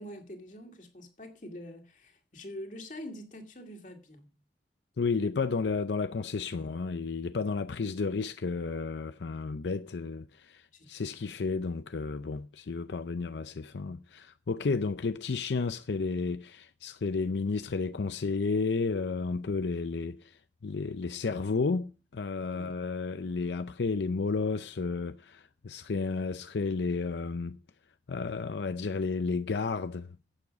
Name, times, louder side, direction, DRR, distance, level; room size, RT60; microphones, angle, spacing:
voice 1, 0.0-4.3 6.5-6.8 10.7-11.1 22.5-22.7, left 1 dB, 45° left, 2.3 m, -45 dB
voice 2, 5.0-20.4 20.6-27.6 28.1-30.2, left 4 dB, 85° left, 0.5 m, -32 dB
11.5 x 8.6 x 5.2 m
head